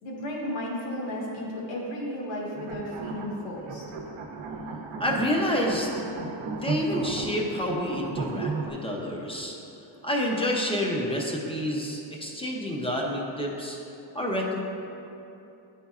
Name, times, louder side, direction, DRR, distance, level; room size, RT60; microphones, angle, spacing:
voice 1, 0.0-3.8, left 1 dB, 70° left, -3 dB, 1.4 m, -34 dB
sound 1, 2.5-8.7, right 4 dB, 75° right, 0.8 m, -35 dB
voice 2, 5.0-5.9 6.5-9.6 10.0-13.8 14.1-14.6, left 1 dB, 10° left, -2 dB, 0.5 m, -28 dB
10.5 x 4.2 x 2.3 m, 2.8 s
cardioid pair, 150°, 47 cm